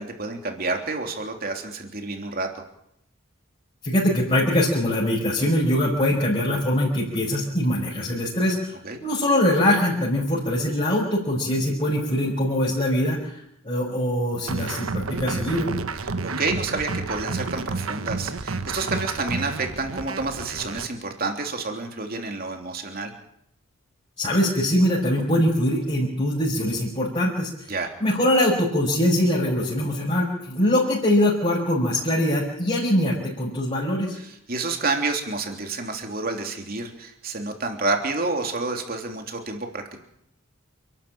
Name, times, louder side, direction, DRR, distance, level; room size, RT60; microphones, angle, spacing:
voice 1, 0.0-2.5 8.8-9.0 16.0-23.1 27.7-27.9 34.1-40.0, right 3 dB, 45° right, 3 dB, 3.3 m, -29 dB
voice 2, 3.8-8.7 9.0-15.7 24.2-27.5 28.0-34.2, left 1 dB, 30° left, -5 dB, 5.4 m, -22 dB
sound 1, 14.5-20.9, right 3 dB, 85° right, 1.2 m, -30 dB
28.5 x 12.0 x 8.9 m, 0.77 s
head